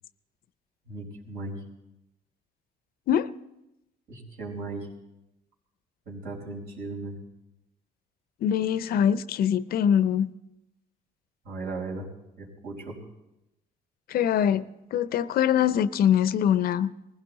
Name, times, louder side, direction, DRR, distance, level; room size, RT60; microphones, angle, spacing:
voice 1, 0.9-1.6 4.1-4.9 6.1-7.2 11.4-12.1 12.4-13.0, right 3 dB, 70° right, -2 dB, 4.7 m, -36 dB
voice 2, 8.4-10.3 14.1-14.6 14.9-16.9, left 9 dB, 60° left, 15 dB, 0.6 m, -23 dB
20.0 x 16.0 x 4.1 m, 0.93 s
cardioid pair, 110°, 17 cm